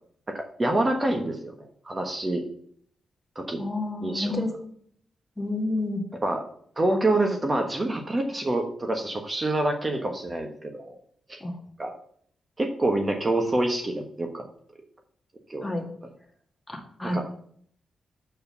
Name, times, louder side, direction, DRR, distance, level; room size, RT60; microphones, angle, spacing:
voice 1, 0.3-2.4 3.3-3.6 4.0-4.4 6.2-6.4 6.8-10.9 11.3-11.4 11.8-11.9 12.6-14.4 15.5-15.6 17.1-17.2, right 2 dB, 25° right, 3 dB, 1.2 m, -26 dB
voice 2, 3.6-4.5 5.4-6.0 11.4-11.5 15.6-15.9 16.7-17.2, left 2 dB, 15° left, 2 dB, 2.0 m, -29 dB
7.5 x 4.7 x 6.8 m, 0.63 s
cardioid pair, 75°, 0 cm